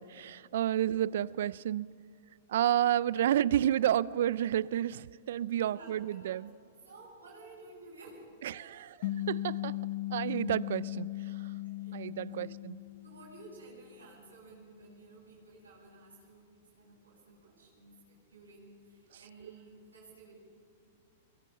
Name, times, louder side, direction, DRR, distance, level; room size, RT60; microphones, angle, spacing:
voice 1, 0.0-1.9 2.5-6.5 8.4-8.8 9.3-9.8 10.1-11.1 11.9-12.8, right 11 dB, 65° right, 0.5 m, -30 dB
voice 2, 5.7-8.3 8.7-8.9 11.6-12.0 12.3-12.7 13.0-20.3, right 2 dB, 90° right, 7.4 m, -54 dB
sound 1, 9.0-13.7, left 16 dB, 55° left, 0.9 m, -38 dB
23.0 x 21.0 x 5.7 m
hypercardioid pair, 110°, 0 cm